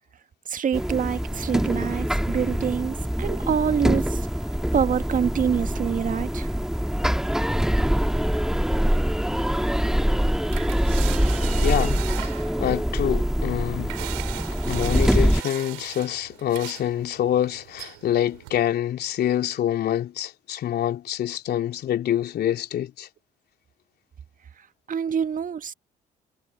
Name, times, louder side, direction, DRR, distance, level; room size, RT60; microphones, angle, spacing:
voice 1, 0.5-4.3 4.7-6.5 24.9-25.7, right 7 dB, 45° right, 1.9 m, -26 dB
sound 1, 0.7-15.4, equal, ahead, 2.0 m, -24 dB
sound 2, 8.1-18.6, right 36 dB, 75° right, 3.3 m, -40 dB
voice 2, 11.6-14.0 14.7-23.1, left 11 dB, 55° left, 3.7 m, -26 dB
figure-of-eight pair, 50°, 20 cm